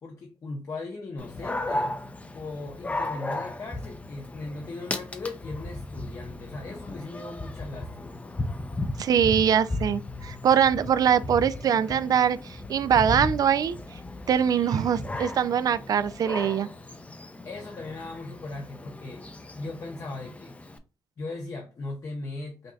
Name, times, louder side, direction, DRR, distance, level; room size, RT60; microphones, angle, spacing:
voice 1, 0.0-1.9 2.3-8.2 17.4-19.2 19.5-20.5 21.2-22.7, left 3 dB, 50° left, 0.8 m, -38 dB
Dog, 1.2-20.8, left 2 dB, 20° left, 0.6 m, -36 dB
voice 2, 9.0-13.8 14.3-16.7, right 8 dB, 55° right, 0.4 m, -23 dB
5.1 x 2.7 x 2.3 m
cardioid pair, 65°, 7 cm